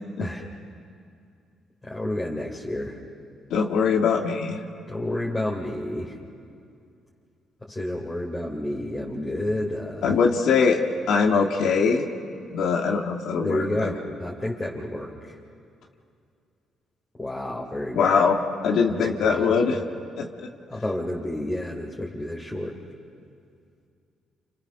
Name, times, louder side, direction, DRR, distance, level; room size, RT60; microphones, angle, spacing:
voice 1, 1.8-3.0 4.9-6.1 7.6-10.2 13.4-15.4 17.2-18.2 18.9-19.5 20.7-22.8, left 1 dB, 15° left, -3 dB, 3.2 m, -30 dB
voice 2, 3.5-4.6 10.0-10.8 11.1-12.0 12.5-13.9 17.9-18.4 18.6-19.8 20.2-20.3, left 5 dB, 75° left, 2 dB, 1.7 m, -22 dB
29.5 x 26.5 x 6.5 m, 2.4 s
cardioid pair, 90°, 0 cm